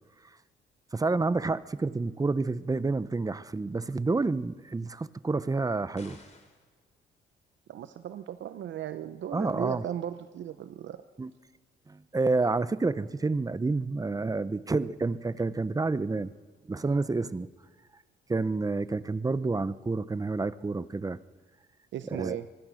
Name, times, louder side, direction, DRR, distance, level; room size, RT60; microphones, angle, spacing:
voice 1, 0.9-6.2 9.3-9.9 11.2-11.3 11.9-16.3 16.7-17.5 18.3-21.2 22.1-22.4, right 3 dB, 20° right, 16 dB, 0.7 m, -29 dB
sound 1, 6.0-6.7, left 3 dB, 35° left, 3.8 m, -52 dB
voice 2, 7.7-11.0 21.9-22.5, right 10 dB, 70° right, 11 dB, 0.8 m, -36 dB
24.5 x 20.5 x 6.4 m, 1.5 s
cardioid pair, 90°, 20 cm